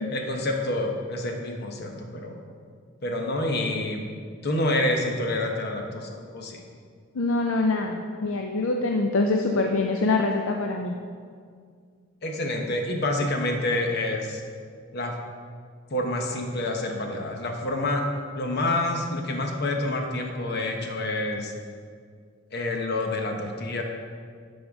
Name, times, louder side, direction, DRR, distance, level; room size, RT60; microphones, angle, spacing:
voice 1, 0.1-2.4 3.0-4.0 4.4-6.6 12.2-14.4 14.9-15.2 15.9-18.0 18.3-21.5 22.5-23.8, left 1 dB, 55° left, 2 dB, 0.9 m, -28 dB
voice 2, 7.1-10.9, left 3 dB, 75° left, 3 dB, 0.5 m, -24 dB
10.5 x 5.5 x 3.5 m, 2.1 s
head